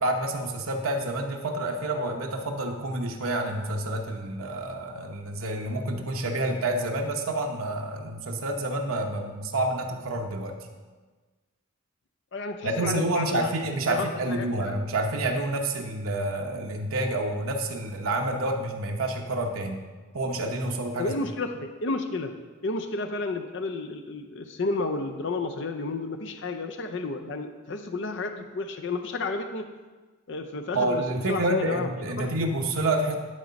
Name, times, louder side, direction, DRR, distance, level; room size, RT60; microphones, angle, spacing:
voice 1, 0.0-10.6 12.6-19.8 20.1-21.1 30.7-33.1, right 1 dB, 80° right, 2 dB, 0.9 m, -28 dB
voice 2, 12.3-13.5 13.9-14.8 21.0-22.3 22.6-29.7 30.3-31.0 31.3-31.9 32.2-32.3, left 3 dB, 55° left, 6 dB, 0.5 m, -31 dB
10.5 x 3.8 x 5.2 m, 1.3 s
head